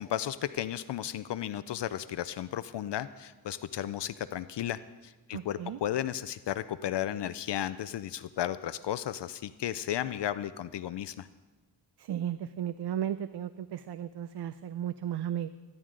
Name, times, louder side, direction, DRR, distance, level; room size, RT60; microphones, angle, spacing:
voice 1, 0.0-11.3, left 11 dB, 70° left, 14 dB, 0.5 m, -34 dB
voice 2, 5.3-5.8 12.0-15.5, right 10 dB, 65° right, 13 dB, 0.5 m, -35 dB
23.5 x 11.0 x 3.8 m, 1.2 s
wide cardioid pair, 95°, 43 cm